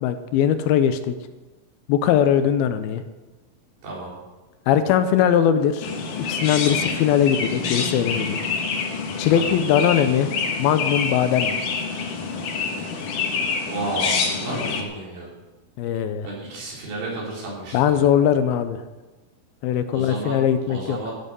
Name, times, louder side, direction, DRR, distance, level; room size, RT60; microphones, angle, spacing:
voice 1, 0.0-1.2 1.9-3.0 4.7-5.9 6.3-8.4 9.2-10.3 10.6-11.6 15.8-16.3 17.7-18.8 19.6-21.0, left 9 dB, 80° left, 10 dB, 2.4 m, -20 dB
Chirp tweet, 5.8-14.8, left 5 dB, 60° left, 2.7 m, -27 dB
voice 2, 13.6-15.3 16.2-18.0 19.9-20.4 20.7-21.1, right 2 dB, 80° right, -5 dB, 6.2 m, -32 dB
14.5 x 7.8 x 6.8 m, 1.2 s
omnidirectional pair, 4.6 m